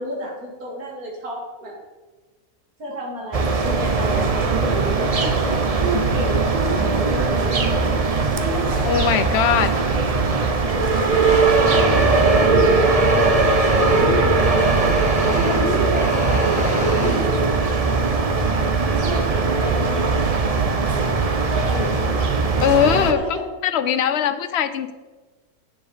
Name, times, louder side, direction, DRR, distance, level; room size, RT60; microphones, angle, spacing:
voice 1, 0.0-1.8 2.8-5.4 5.8-8.0 8.3-9.8 10.4-10.9 11.5-13.4 13.8-14.9 15.3-17.7 18.8-20.2 20.9-22.1 22.9-23.4 23.8-23.9, right 1 dB, 70° right, -2 dB, 3.0 m, -31 dB
sound 1, 3.3-23.1, right 4 dB, 40° right, 0.6 m, -20 dB
voice 2, 8.8-9.7 22.6-23.2 23.6-24.9, left 9 dB, 60° left, 11 dB, 0.8 m, -20 dB
sound 2, 11.1-17.2, equal, 5° right, 2.0 m, -25 dB
9.1 x 7.6 x 5.0 m, 1.2 s
omnidirectional pair, 1.6 m